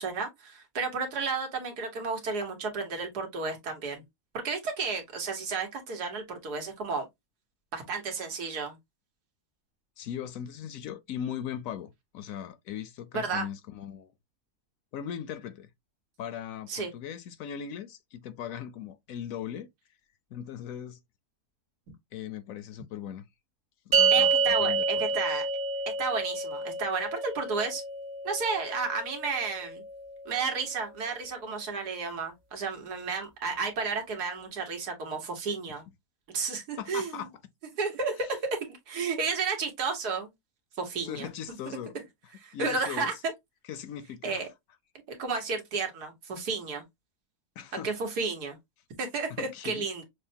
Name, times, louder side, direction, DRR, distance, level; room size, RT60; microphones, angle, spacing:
voice 1, 0.0-4.0 4.3-7.1 7.7-8.8 13.1-13.5 16.7-16.9 24.1-25.5 26.0-27.8 28.2-29.8 30.3-35.8 36.3-37.3 37.8-40.3 40.8-41.3 42.4-43.3 44.2-44.5 45.1-46.8 47.8-48.6 49.0-50.0, right 4 dB, 85° right, 1.8 m, -32 dB
voice 2, 10.0-14.1 14.9-15.7 16.2-19.7 20.3-21.0 22.1-23.2 23.9-25.4 36.8-37.3 41.0-41.9 42.5-43.1 43.7-44.4 47.6-47.9 49.3-49.9, left 9 dB, 70° left, 0.9 m, -39 dB
sound 1, 23.9-30.5, right 4 dB, 40° right, 0.8 m, -29 dB
6.4 x 2.1 x 2.7 m
omnidirectional pair, 1.6 m